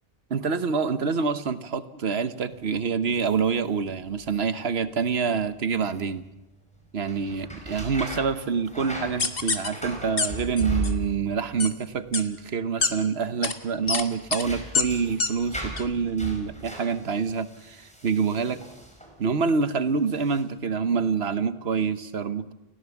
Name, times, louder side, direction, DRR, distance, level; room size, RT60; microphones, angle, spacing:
voice 1, 0.3-6.2 6.9-18.6 19.2-22.5, right 5 dB, 85° right, 11 dB, 1.3 m, -26 dB
sound 1, 2.5-19.5 20.0-20.4, right 1 dB, 5° left, 4.8 m, -39 dB
sound 2, 9.2-9.7 10.2-10.3 10.6-10.9 11.6-11.7 12.1-12.2 12.8-12.9 13.4-13.5 13.9-14.0 14.3-14.4 14.7-14.8 15.2-15.3 15.8-15.9, left 4 dB, 65° left, 1.7 m, -24 dB
30.0 x 16.5 x 7.2 m, 0.96 s
omnidirectional pair, 1.0 m